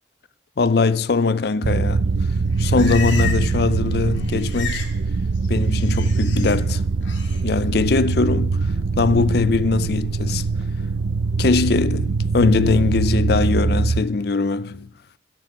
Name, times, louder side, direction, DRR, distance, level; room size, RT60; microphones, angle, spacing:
voice 1, 0.6-2.1 2.6-4.8 5.5-6.8 7.4-10.4 11.4-14.9, left 4 dB, 55° left, 0.5 m, -21 dB
sound 1, 1.6-14.0, right 4 dB, 75° right, 0.5 m, -22 dB
Livestock farm animals working animals, 2.2-3.7 3.9-5.0 5.2-6.6 7.0-7.4, left 6 dB, 80° left, 2.2 m, -34 dB
17.5 x 14.5 x 3.7 m
head